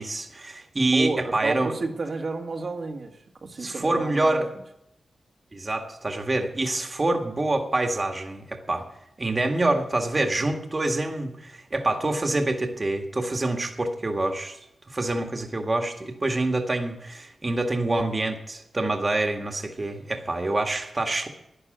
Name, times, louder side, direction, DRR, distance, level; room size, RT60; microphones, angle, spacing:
voice 1, 0.0-1.7 3.6-4.5 5.5-8.9 9.2-14.6 14.9-21.3, right 2 dB, 35° right, 4 dB, 1.9 m, -26 dB
voice 2, 0.9-4.5, right 3 dB, 55° right, 1 dB, 1.9 m, -32 dB
12.0 x 10.0 x 9.1 m, 0.85 s
cardioid pair, 75°, 0 cm